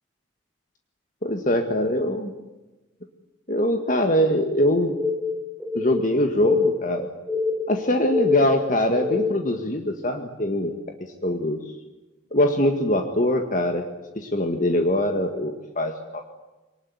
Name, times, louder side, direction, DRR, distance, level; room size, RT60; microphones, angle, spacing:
voice 1, 1.2-2.3 3.5-5.0 5.7-7.1 7.7-11.6 12.3-13.9 14.2-16.2, left 1 dB, 40° left, 5 dB, 1.8 m, -23 dB
sound 1, 4.8-9.6, left 4 dB, 5° left, 1.5 m, -26 dB
23.5 x 19.5 x 9.6 m, 1.1 s
head